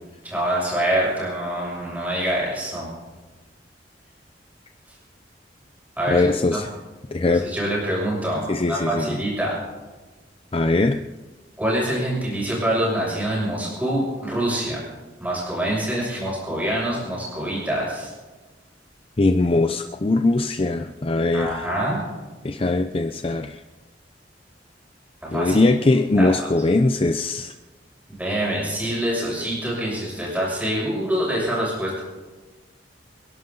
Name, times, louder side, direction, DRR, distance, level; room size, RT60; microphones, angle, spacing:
voice 1, 0.2-2.9 6.0-6.6 7.3-9.6 11.6-14.8 15.2-18.1 21.3-22.0 25.2-25.6 25.9-26.5 28.1-32.0, right 1 dB, 10° right, -5 dB, 6.8 m, -25 dB
voice 2, 6.1-6.7 7.1-7.4 8.5-9.2 10.5-11.0 19.2-21.7 22.4-23.6 25.3-27.5, left 2 dB, 30° left, 6 dB, 0.6 m, -21 dB
27.5 x 11.0 x 4.0 m, 1.2 s
head